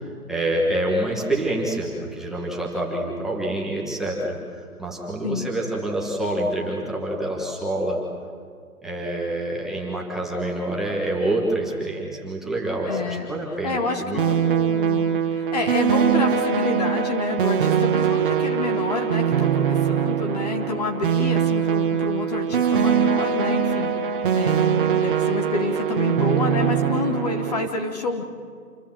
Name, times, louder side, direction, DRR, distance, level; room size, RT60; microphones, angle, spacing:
voice 1, 0.0-8.0 8.8-14.2 14.5-14.6, right 1 dB, ahead, -4 dB, 1.4 m, -27 dB
voice 2, 12.9-13.3 13.6-24.0 24.3-28.2, left 4 dB, 25° left, 5 dB, 1.2 m, -28 dB
sound 1, 14.2-27.7, right 8 dB, 35° right, 1.3 m, -22 dB
27.5 x 21.5 x 7.5 m, 2.1 s
hypercardioid pair, 165°, 45 cm